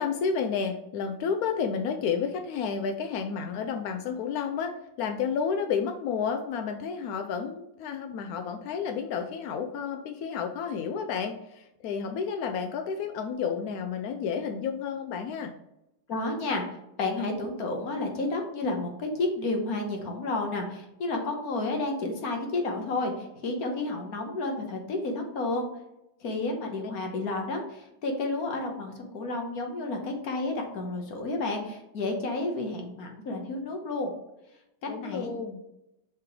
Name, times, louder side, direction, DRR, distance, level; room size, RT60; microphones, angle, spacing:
voice 1, 0.0-15.5 34.9-35.6, left 6 dB, 80° left, 5 dB, 0.8 m, -31 dB
voice 2, 16.1-25.7 26.2-34.1 34.8-35.3, left 2 dB, 55° left, 3 dB, 1.4 m, -31 dB
5.8 x 3.7 x 4.7 m, 0.87 s
omnidirectional pair, 2.1 m